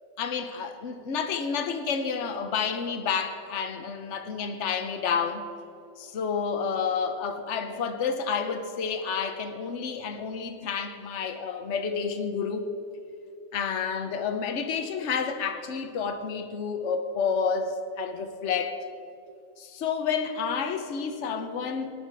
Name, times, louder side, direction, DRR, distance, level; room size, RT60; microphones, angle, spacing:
voice 1, 0.2-5.4 6.0-12.7 13.5-18.8 19.6-21.9, left 6 dB, 65° left, 1.2 m, -30 dB
18.5 x 10.0 x 4.7 m
omnidirectional pair, 1.3 m